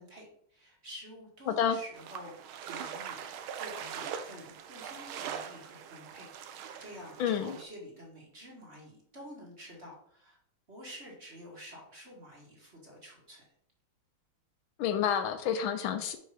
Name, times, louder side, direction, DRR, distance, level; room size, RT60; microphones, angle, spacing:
voice 1, 0.0-3.2 3.5-10.4 10.7-13.5, equal, 30° right, -3 dB, 1.9 m, -49 dB
voice 2, 1.5-1.8 7.2-7.6 14.8-16.2, left 8 dB, 75° left, 8 dB, 1.4 m, -29 dB
sound 1, 1.9-7.6, right 8 dB, 75° right, 1.5 m, -42 dB
5.5 x 5.2 x 4.9 m, 0.67 s
omnidirectional pair, 2.4 m